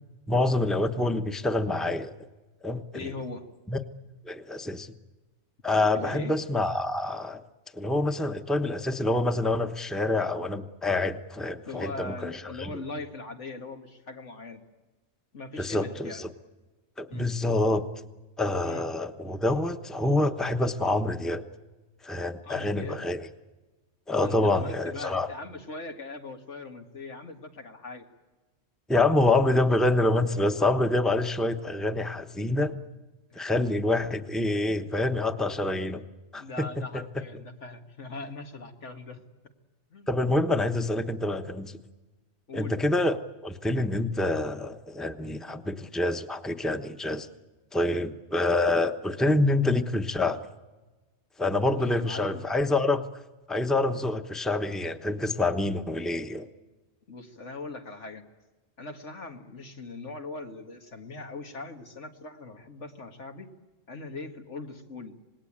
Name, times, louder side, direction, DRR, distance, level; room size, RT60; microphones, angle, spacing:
voice 1, 0.3-2.1 2.6-3.1 3.7-3.8 4.3-4.9 5.6-7.4 7.7-12.7 15.6-16.3 17.0-17.9 18.4-21.4 22.0-23.3 24.1-25.3 28.9-32.8 33.3-36.0 36.3-36.7 36.9-37.0 40.1-41.8 42.5-47.3 47.7-50.4 51.4-53.0 53.5-56.5, left 2 dB, ahead, 7 dB, 0.9 m, -26 dB
voice 2, 2.9-3.5 5.9-6.4 11.7-14.6 15.3-16.3 17.1-17.3 18.6-18.8 22.4-23.2 24.2-28.1 33.3-33.5 36.3-39.2 39.9-40.1 42.5-42.8 47.8-48.0 51.7-52.4 57.1-58.2 58.8-63.5 63.9-65.2, left 3 dB, 90° left, 4 dB, 2.2 m, -40 dB
26.5 x 20.0 x 8.8 m, 1.2 s
omnidirectional pair, 1.2 m